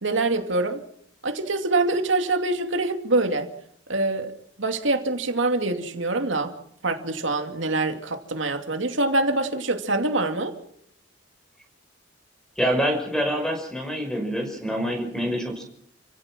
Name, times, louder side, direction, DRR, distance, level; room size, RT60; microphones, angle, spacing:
voice 1, 0.0-0.8 1.2-3.5 3.9-4.3 4.6-6.5 6.8-10.5, right 2 dB, 90° right, 5 dB, 2.5 m, -24 dB
voice 2, 12.6-15.6, equal, 5° left, 5 dB, 5.5 m, -26 dB
29.5 x 16.5 x 6.1 m, 0.67 s
head